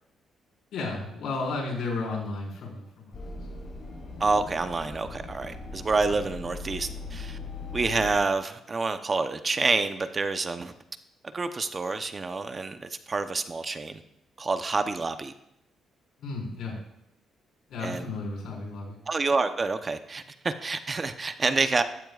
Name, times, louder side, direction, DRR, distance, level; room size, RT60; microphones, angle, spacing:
voice 1, 0.7-3.3 3.6-3.9 16.2-16.7 17.7-19.0, left 3 dB, 80° left, -2 dB, 4.8 m, -33 dB
sound 1, 3.1-8.2, left 3 dB, 50° left, 5.2 m, -39 dB
voice 2, 4.2-7.4 7.7-10.7 11.3-14.0 14.4-15.3 17.8-18.1 19.1-21.8, right 3 dB, 30° right, 9 dB, 0.8 m, -28 dB
14.0 x 13.0 x 2.5 m, 0.83 s
cardioid pair, 90°, 0 cm